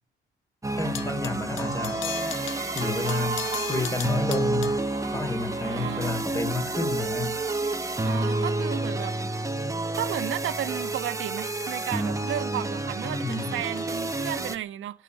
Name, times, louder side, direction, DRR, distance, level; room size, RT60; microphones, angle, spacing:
sound 1, 0.6-14.6, right 2 dB, 15° right, 1.6 m, -30 dB
sound 2, 0.8-5.0 11.6-14.3, left 12 dB, 85° left, 1.4 m, -40 dB
voice 1, 0.8-2.0 2.7-4.8 5.1-7.4 13.0-13.6, left 3 dB, 15° left, 4.1 m, -30 dB
sound 3, 1.6-4.2 4.5-9.1 9.8-10.4, right 4 dB, 35° right, 0.8 m, -40 dB
voice 2, 5.6-6.1 8.0-9.2 10.0-15.0, right 12 dB, 75° right, 1.6 m, -33 dB
17.5 x 7.6 x 9.9 m
cardioid pair, 90°, 20 cm